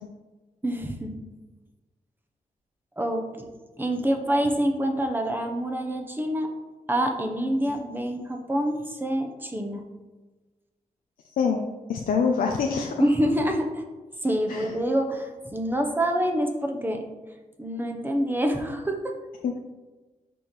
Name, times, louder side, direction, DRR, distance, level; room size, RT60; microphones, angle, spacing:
voice 1, 0.6-1.2 3.0-3.5 3.8-6.5 6.9-9.8 13.0-13.8 14.2-17.0 17.6-19.2, equal, 15° right, 3 dB, 0.8 m, -26 dB
voice 2, 11.9-13.0 14.5-14.7 19.4-19.6, left 5 dB, 90° left, 2 dB, 0.5 m, -25 dB
6.0 x 5.0 x 3.1 m, 1.2 s
cardioid pair, 90°, 14 cm